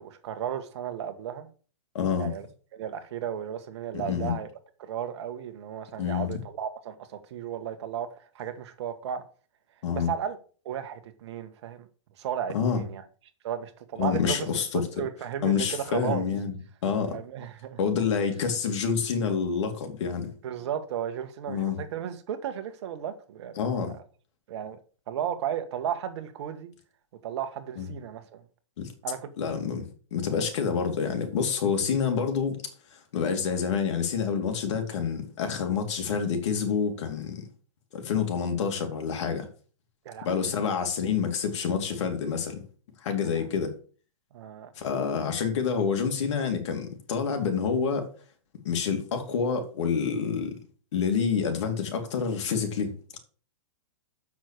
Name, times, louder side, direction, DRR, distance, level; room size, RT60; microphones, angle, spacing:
voice 1, 0.0-1.5 2.2-2.5 2.7-4.5 4.8-9.2 9.9-10.4 10.6-11.9 12.2-13.0 13.4-14.5 15.0-16.3 17.1-17.8 20.4-24.0 24.5-24.8 25.1-26.7 27.2-28.4 29.0-29.3 40.0-40.5 43.3-43.4 44.3-44.7, right 9 dB, 55° right, 1.5 m, -34 dB
voice 2, 1.9-2.3 3.9-4.3 6.0-6.3 9.8-10.1 12.5-12.8 14.0-14.9 15.4-16.6 16.8-17.1 17.8-20.3 21.5-21.8 23.6-23.9 27.8-27.9 28.8-28.9 29.4-29.9 30.1-32.6 33.1-37.5 37.9-39.5 40.2-42.6 43.0-43.7 44.8-48.1 48.6-50.6 50.9-52.9, left 6 dB, 60° left, 2.6 m, -27 dB
7.3 x 6.1 x 6.7 m
hypercardioid pair, 140°, 17 cm